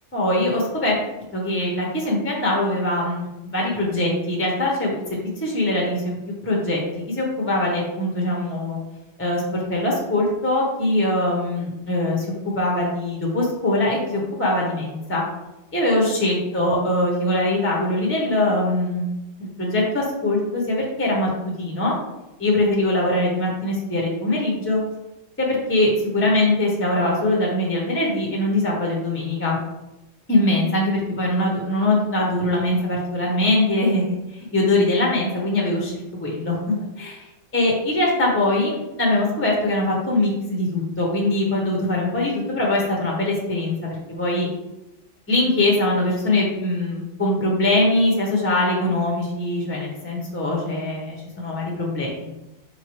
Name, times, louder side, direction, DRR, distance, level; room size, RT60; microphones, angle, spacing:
voice 1, 0.1-1.0 1.3-6.2 6.4-6.8 7.1-8.8 9.2-15.2 15.7-19.1 19.4-21.3 21.6-21.9 22.4-24.8 25.4-29.6 30.3-44.5 45.3-52.1, left 1 dB, 10° left, -3 dB, 0.6 m, -22 dB
4.4 x 2.9 x 3.0 m, 0.96 s
omnidirectional pair, 1.4 m